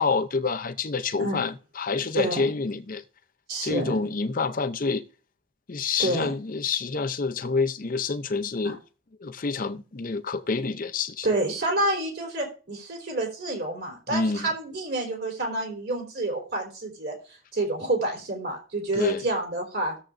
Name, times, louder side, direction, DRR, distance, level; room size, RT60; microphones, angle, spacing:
voice 1, 0.0-3.0 3.6-5.1 5.7-8.8 9.2-11.3 14.1-14.5 18.9-19.3, left 4 dB, 40° left, 0.6 m, -27 dB
voice 2, 2.2-2.5 3.5-4.0 6.0-6.3 8.6-8.7 11.2-17.2 17.5-19.9, right 2 dB, 50° right, 3.4 m, -28 dB
19.0 x 7.3 x 2.6 m
head